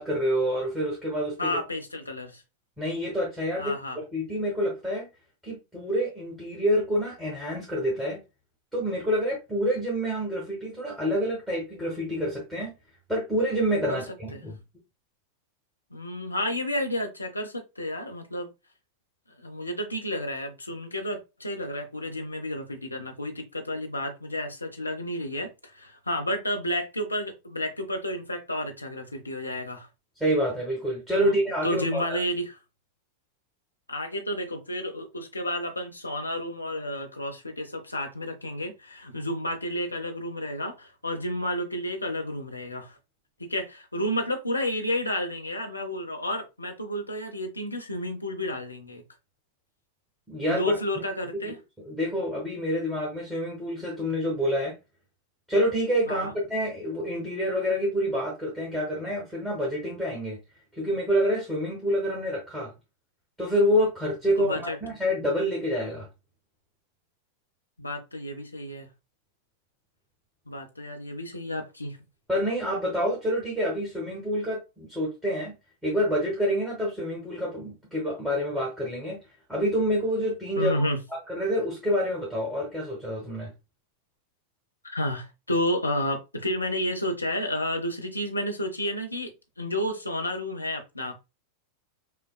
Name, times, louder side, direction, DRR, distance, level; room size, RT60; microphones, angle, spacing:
voice 1, 0.0-1.5 2.8-5.1 5.4-8.2 8.7-12.7 13.1-14.6 30.2-32.2 50.3-50.6 51.4-51.5 51.8-54.7 55.5-60.4 60.8-62.7 63.4-66.1 72.3-75.5 75.8-79.2 79.5-80.8 81.1-83.5, equal, 5° right, 1.5 m, -27 dB
voice 2, 1.4-2.4 3.6-4.0 13.9-14.0 14.3-14.4 15.9-18.5 19.4-29.9 31.2-31.4 31.6-32.6 33.9-43.0 43.4-49.0 50.5-51.6 56.1-56.3 64.4-64.8 67.8-68.9 70.5-72.0 80.6-81.0 84.8-91.1, left 1 dB, 85° left, 0.8 m, -31 dB
5.6 x 2.2 x 2.3 m
figure-of-eight pair, 90°, 0 cm